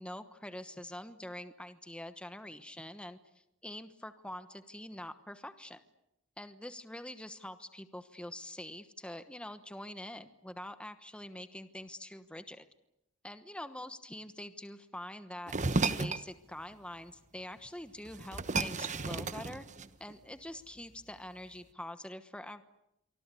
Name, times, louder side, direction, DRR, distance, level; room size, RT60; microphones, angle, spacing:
voice 1, 0.0-3.2 3.6-5.8 6.4-12.7 13.2-19.7 20.0-22.6, left 1 dB, 5° left, 9 dB, 1.1 m, -45 dB
sound 1, 15.5-16.3 17.6-17.7 18.0-20.1, right 3 dB, 40° right, 1.1 m, -33 dB
27.5 x 24.5 x 8.4 m, 0.86 s
head